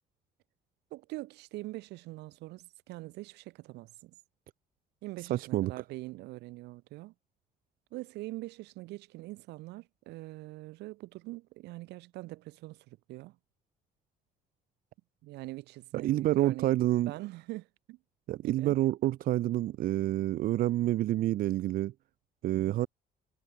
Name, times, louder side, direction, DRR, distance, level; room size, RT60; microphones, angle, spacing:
voice 1, 0.9-4.2 5.0-7.1 7.9-13.4 15.2-18.0 18.4-18.8 22.5-22.8, right 19 dB, 85° right, 1.1 m, -43 dB
voice 2, 5.3-5.7 16.0-17.1 18.3-21.9 22.4-22.9, right 14 dB, 55° right, 0.4 m, -28 dB
cardioid pair, 110°, 17 cm